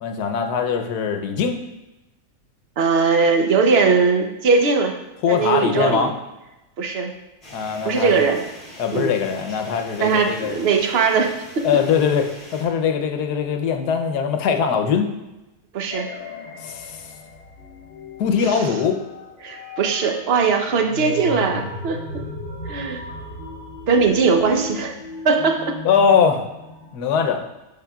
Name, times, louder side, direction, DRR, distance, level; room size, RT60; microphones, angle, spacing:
voice 1, 0.0-1.6 5.2-6.1 7.5-8.3 8.8-10.6 11.6-15.1 16.6-17.1 18.2-19.0 25.8-26.4 26.9-27.5, left 6 dB, 90° left, 6 dB, 1.3 m, -21 dB
voice 2, 2.8-4.9 5.3-6.1 6.8-7.1 7.8-8.4 8.9-9.1 10.0-11.7 15.7-16.1 18.4-18.7 19.4-22.0 22.7-23.0 23.9-24.9 25.2-25.8, right 5 dB, 50° right, 4 dB, 0.8 m, -20 dB
sound 1, 7.4-12.6, left 1 dB, 30° left, 2.6 m, -42 dB
sound 2, 15.9-26.9, left 1 dB, 70° left, 1.7 m, -36 dB
11.0 x 4.9 x 2.3 m, 1.0 s
omnidirectional pair, 1.7 m